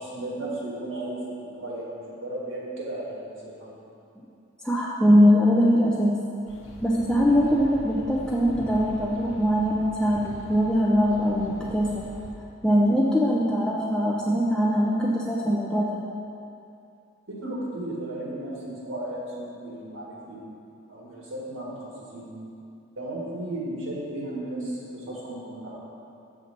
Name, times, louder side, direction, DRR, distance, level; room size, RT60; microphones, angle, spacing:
voice 1, 0.0-3.8 17.3-18.6 18.8-20.4 20.9-21.7 22.1-22.3 23.0-25.8, right 1 dB, 70° right, -5 dB, 1.8 m, -34 dB
voice 2, 4.6-6.2 6.8-12.0 12.6-16.0, equal, 5° left, -5 dB, 0.4 m, -22 dB
sound 1, 6.5-12.3, equal, 80° left, 1.0 m, -43 dB
7.2 x 5.8 x 4.3 m, 2.6 s
head